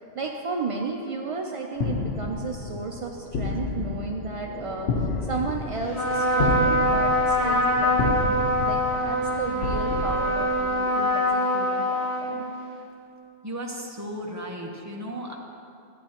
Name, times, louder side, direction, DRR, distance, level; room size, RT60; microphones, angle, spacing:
voice 1, 0.1-12.5, right 4 dB, 50° right, 1 dB, 0.4 m, -33 dB
sound 1, 1.8-11.3, left 3 dB, 65° left, 1.0 m, -31 dB
Trumpet, 5.9-12.7, equal, 40° left, 2.5 m, -24 dB
voice 2, 13.4-15.4, equal, 15° right, -1 dB, 0.9 m, -35 dB
13.5 x 8.9 x 2.9 m, 2.6 s
omnidirectional pair, 1.2 m